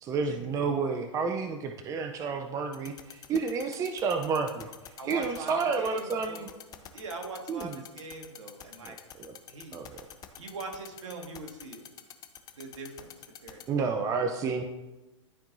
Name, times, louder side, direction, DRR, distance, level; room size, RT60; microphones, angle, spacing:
voice 1, 0.0-4.7 5.0-6.5 7.5-7.8 8.8-9.3 9.7-10.1 13.7-14.6, right 5 dB, 20° right, 5 dB, 0.5 m, -30 dB
sound 1, 2.7-13.6, left 11 dB, 25° left, 0.6 m, -45 dB
voice 2, 5.0-6.5 6.9-9.0 9.5-9.8 10.4-11.8 12.5-13.1 13.4-13.9, right 3 dB, 70° right, 2 dB, 1.7 m, -42 dB
12.5 x 4.4 x 2.6 m, 1.0 s
hypercardioid pair, 115°, 16 cm